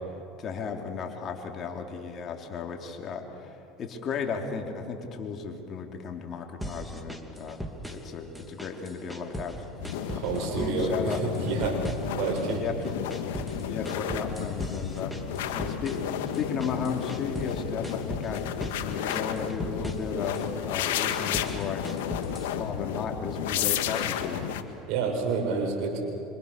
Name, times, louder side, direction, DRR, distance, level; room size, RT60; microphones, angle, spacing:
voice 1, 0.4-7.6 7.9-9.7 10.0-11.2 12.5-13.0 13.7-15.1 15.5-16.0 16.4-18.4 18.9-21.9 22.5-24.5, left 5 dB, 40° left, 2 dB, 3.5 m, -35 dB
sound 1, 6.6-8.1 8.4-9.6 9.8-10.8 11.1-12.6 12.8-17.6 17.8-18.8 19.1-20.5 20.9-22.6, equal, ahead, 2.6 m, -38 dB
sound 2, 9.8-24.6, left 10 dB, 80° left, 1.8 m, -32 dB
voice 2, 10.1-11.8 12.1-12.8 24.9-26.0, right 4 dB, 65° right, 2 dB, 6.8 m, -29 dB
26.5 x 26.0 x 6.9 m, 2.7 s
supercardioid pair, 100°, 0 cm